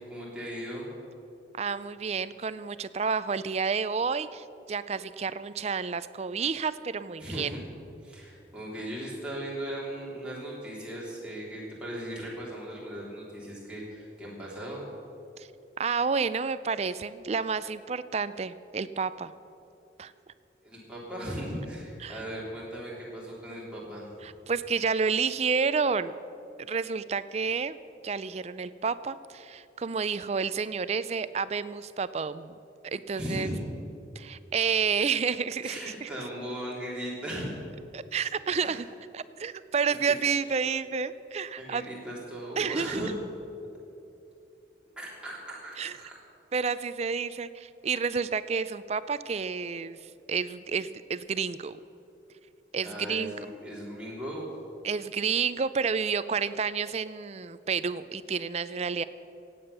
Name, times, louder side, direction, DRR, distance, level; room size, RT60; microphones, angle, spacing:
voice 1, 0.1-0.9 7.2-7.6 8.0-14.9 20.6-24.0 33.1-33.6 35.6-37.5 38.6-38.9 40.1-40.2 41.6-43.1 45.0-46.2 52.8-54.5, equal, 5° right, -6 dB, 3.3 m, -38 dB
voice 2, 1.6-7.6 15.4-15.5 15.8-19.3 20.0-20.1 22.0-22.2 24.2-26.1 26.7-27.7 28.0-32.6 32.8-33.5 34.2-36.1 37.9-38.9 39.1-41.8 42.6-43.1 45.8-46.0 46.5-51.8 52.7-53.3 54.8-59.0, right 5 dB, 35° right, 15 dB, 0.4 m, -30 dB
16.5 x 8.9 x 6.7 m, 2.7 s
head